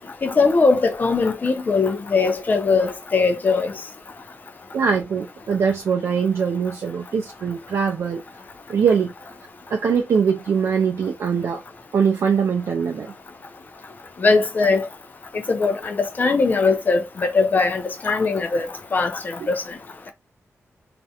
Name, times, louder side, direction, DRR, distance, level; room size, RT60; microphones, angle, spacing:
voice 1, 0.2-3.7 14.2-14.9 15.5-19.6, left 4 dB, 35° left, 0.5 m, -20 dB
voice 2, 4.7-8.2 8.7-9.1 9.7-11.6 11.9-13.1, right 6 dB, 70° right, 0.4 m, -22 dB
2.4 x 2.1 x 2.7 m
wide cardioid pair, 180°, 5 cm